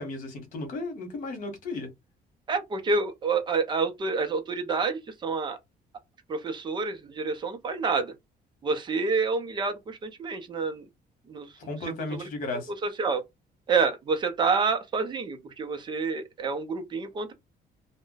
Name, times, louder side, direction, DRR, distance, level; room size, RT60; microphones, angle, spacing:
voice 1, 0.0-1.9 11.6-12.7, left 2 dB, 50° left, 1.3 m, -34 dB
voice 2, 2.5-5.6 6.3-8.1 8.6-10.8 11.3-11.5 12.1-12.2 12.8-13.2 13.7-17.3, right 4 dB, 30° right, 0.6 m, -28 dB
2.5 x 2.2 x 3.8 m
cardioid pair, 160°, 17 cm